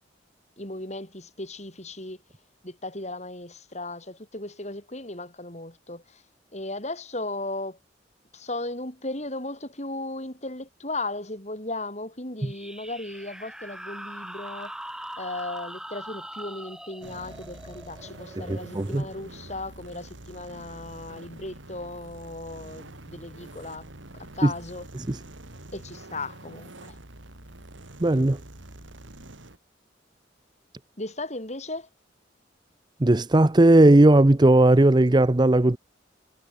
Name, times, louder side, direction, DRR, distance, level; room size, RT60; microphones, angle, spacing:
voice 1, 0.6-2.2 2.6-6.2 6.5-7.8 8.3-14.7 15.2-23.9 24.1-24.9 25.7-27.0 31.0-31.9, left 2 dB, 35° left, 7.0 m, -36 dB
sound 1, 12.4-19.6, right 1 dB, 5° right, 4.2 m, -42 dB
sound 2, 17.0-29.6, right 1 dB, 85° right, 3.0 m, -45 dB
voice 2, 18.4-19.1 24.4-24.5 25.1-25.2 28.0-28.4 33.0-35.8, right 1 dB, 25° right, 0.6 m, -17 dB
head